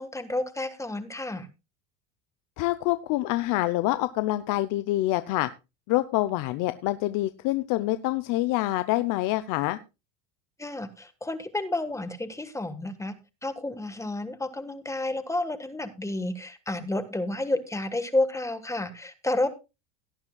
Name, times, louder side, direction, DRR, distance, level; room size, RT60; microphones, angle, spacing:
voice 1, 0.0-1.5 10.6-13.1 13.4-19.5, left 2 dB, 10° left, 10 dB, 1.3 m, -30 dB
voice 2, 2.6-5.5 5.9-9.8, left 17 dB, 60° left, 12 dB, 0.7 m, -26 dB
18.0 x 9.6 x 2.3 m, 0.27 s
supercardioid pair, 115°, 38 cm